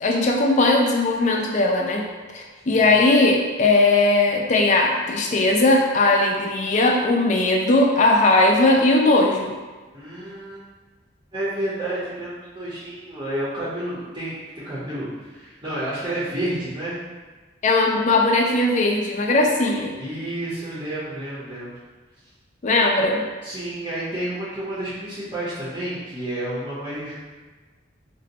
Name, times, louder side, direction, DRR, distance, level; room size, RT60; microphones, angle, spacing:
voice 1, 0.0-9.5 17.6-19.9 22.6-23.2, left 2 dB, 40° left, 0 dB, 0.3 m, -19 dB
voice 2, 9.9-10.6 11.3-17.0 20.0-21.7 23.4-27.2, right 1 dB, 25° right, -11 dB, 0.6 m, -30 dB
2.5 x 2.0 x 3.9 m, 1.3 s
head